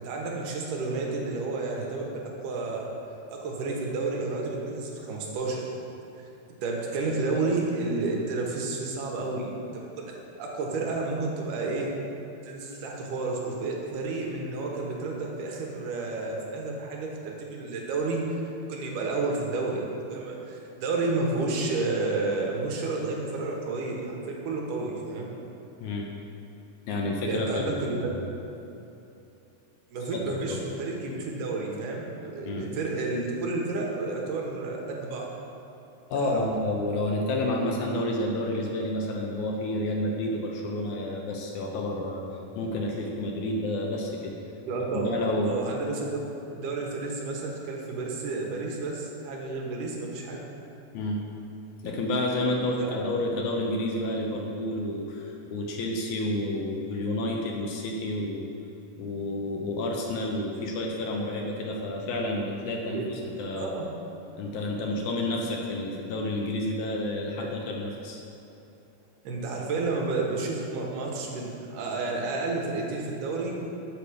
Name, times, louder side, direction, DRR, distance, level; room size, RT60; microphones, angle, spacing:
voice 1, 0.0-2.9 3.3-5.6 6.2-6.3 6.6-11.9 12.4-18.4 18.7-19.8 20.1-25.3 27.3-28.1 29.9-35.3 36.2-36.5 44.6-45.1 45.4-46.2 46.5-50.4 52.8-53.0 62.9-63.1 63.6-63.9 67.4-67.5 69.2-73.6, right 3 dB, 80° right, -1 dB, 2.5 m, -31 dB
voice 2, 26.9-28.1 30.1-30.6 32.5-32.7 36.1-42.2 42.6-44.3 44.9-45.5 50.9-51.2 51.8-58.5 59.0-63.7 64.4-68.2, left 1 dB, 75° left, 0 dB, 2.0 m, -30 dB
6.9 x 6.9 x 4.8 m, 2.8 s
omnidirectional pair, 3.8 m